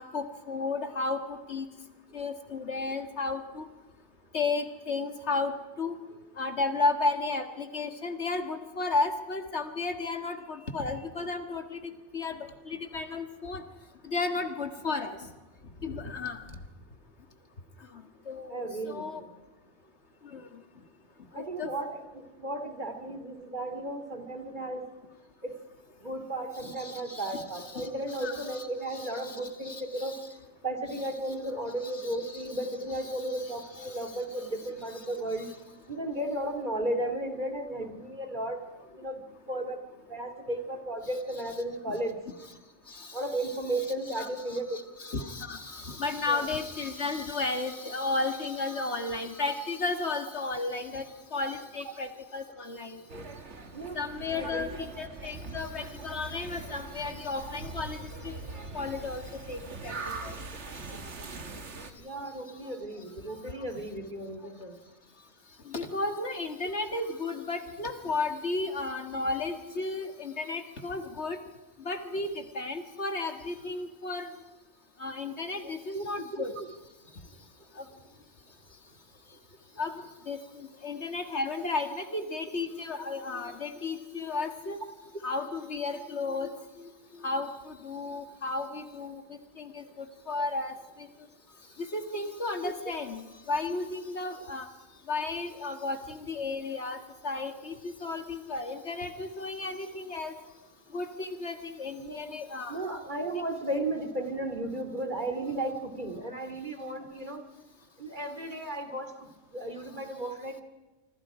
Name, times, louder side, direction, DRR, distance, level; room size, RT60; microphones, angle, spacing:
voice 1, 0.0-1.7 2.1-3.7 4.3-5.5 5.8-6.0 6.4-11.8 12.1-13.6 14.0-15.2 15.8-16.4 17.9-19.2 20.2-20.6 21.3-21.7 26.6-30.2 31.8-32.4 33.1-34.0 39.6-39.7 41.9-42.0 42.9-43.2 44.1-51.1 51.3-53.0 53.9-58.5 58.7-59.9 60.2-60.4 62.6-62.7 65.7-71.4 71.9-74.3 75.0-76.5 77.8-77.9 79.8-79.9 80.3-84.8 85.2-86.5 86.8-86.9 87.2-91.1 91.8-94.7 95.1-100.3 100.9-102.8, left 3 dB, 60° left, 7 dB, 2.1 m, -34 dB
voice 2, 18.5-19.3 21.3-24.8 25.4-25.5 26.0-30.2 30.6-35.5 35.9-39.2 39.5-39.8 40.1-42.2 43.1-44.8 46.3-46.5 53.1-53.2 53.7-54.0 54.3-54.9 61.9-64.7 75.9-76.7 81.6-81.7 92.6-92.7 102.0-102.4 102.7-107.4 108.0-110.6, right 1 dB, 40° right, 6 dB, 2.8 m, -34 dB
sound 1, 53.1-61.9, right 3 dB, 65° right, 1.9 m, -42 dB
26.0 x 25.5 x 5.0 m, 1.2 s
omnidirectional pair, 1.3 m